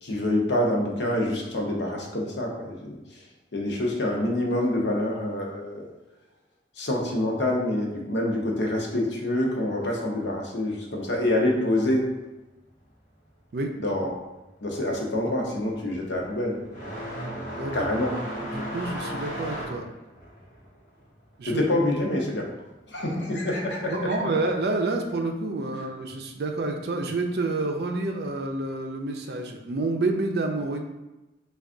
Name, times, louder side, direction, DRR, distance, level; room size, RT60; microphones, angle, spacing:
voice 1, 0.0-3.0 3.5-5.9 6.8-12.1 13.8-14.2 14.6-16.6 17.7-18.1 21.4-22.5 22.9-24.2, left 1 dB, 90° left, -1 dB, 0.7 m, -26 dB
sound 1, 14.1-14.5 14.8-23.1 23.4-24.4 25.4-25.5 26.3-26.4 28.2-28.3, equal, 50° left, 1.0 m, -36 dB
voice 2, 17.6-17.9 18.5-19.8 21.4-21.6 23.8-30.8, right 2 dB, 65° right, 3 dB, 0.4 m, -28 dB
3.4 x 2.3 x 3.7 m, 1.0 s
head